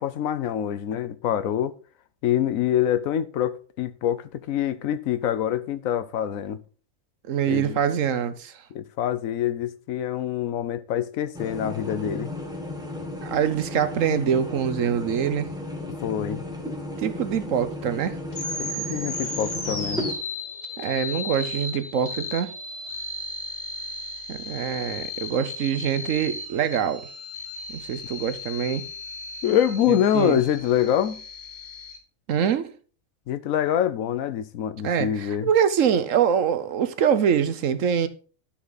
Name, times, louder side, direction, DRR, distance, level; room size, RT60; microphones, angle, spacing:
voice 1, 0.0-1.7 2.2-6.6 7.5-7.8 8.7-12.3 16.0-16.4 18.6-20.1 29.4-31.2 33.3-35.5, left 10 dB, 80° left, 1.1 m, -25 dB
voice 2, 7.3-8.5 13.2-15.5 17.0-18.2 20.8-22.5 24.3-27.0 27.8-28.9 29.9-30.4 32.3-32.7 34.8-38.1, right 8 dB, 70° right, 1.2 m, -24 dB
sound 1, 11.3-20.1, left 1 dB, 5° right, 1.6 m, -34 dB
sound 2, 18.3-32.0, left 2 dB, 30° left, 2.0 m, -35 dB
11.5 x 6.0 x 3.9 m
omnidirectional pair, 1.4 m